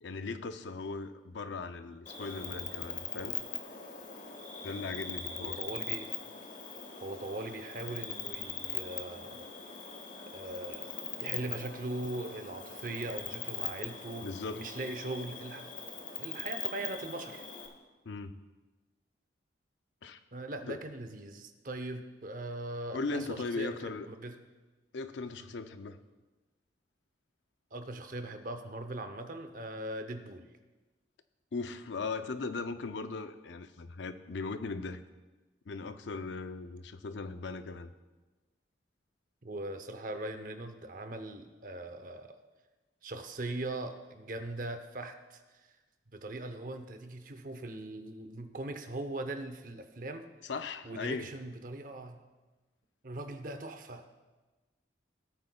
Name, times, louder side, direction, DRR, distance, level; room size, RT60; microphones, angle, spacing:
voice 1, 0.0-3.3 4.6-5.6 14.2-14.6 18.0-18.4 20.0-20.2 20.7-20.8 22.9-24.1 24.9-26.0 31.5-35.0 35.7-37.9 50.4-51.3, left 3 dB, 75° left, 10 dB, 0.5 m, -38 dB
Cricket, 2.1-17.7, left 7 dB, 45° left, 1.0 m, -41 dB
voice 2, 5.3-6.1 7.0-9.5 10.3-10.9 11.2-14.3 14.5-15.7 16.2-17.4 20.3-24.3 27.7-30.5 39.4-42.4 43.0-45.7 46.1-50.3 50.8-52.2 53.0-54.1, right 2 dB, 45° right, 8 dB, 0.7 m, -40 dB
17.5 x 8.7 x 2.3 m, 1.2 s
head